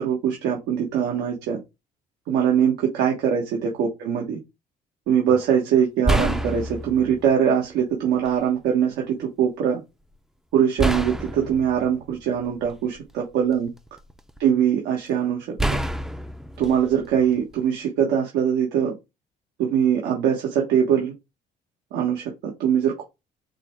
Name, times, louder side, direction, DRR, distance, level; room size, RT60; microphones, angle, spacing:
voice 1, 0.0-1.6 2.3-4.4 5.1-9.8 10.5-13.7 14.4-15.4 16.6-18.9 19.6-21.1 21.9-23.0, right 8 dB, 90° right, 0 dB, 1.1 m, -22 dB
sound 1, 5.3-5.4 6.0-7.3 8.3-8.4 10.8-13.0 13.5-14.4 15.6-17.7, right 1 dB, 5° right, 0.4 m, -27 dB
5.0 x 2.2 x 4.6 m, 0.23 s
cardioid pair, 110°, 17 cm